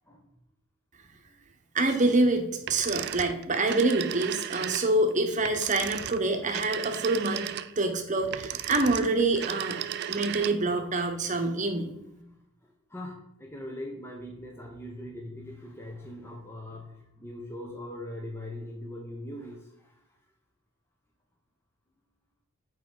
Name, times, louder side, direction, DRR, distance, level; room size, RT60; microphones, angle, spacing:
voice 1, 1.7-7.5 7.8-9.8 10.1-11.9, right 2 dB, 35° right, 5 dB, 1.0 m, -26 dB
sound 1, 2.6-10.8, right 10 dB, 50° right, 0.3 m, -35 dB
voice 2, 12.9-20.0, left 1 dB, 10° left, 0 dB, 0.7 m, -41 dB
7.6 x 4.7 x 3.8 m, 0.84 s
head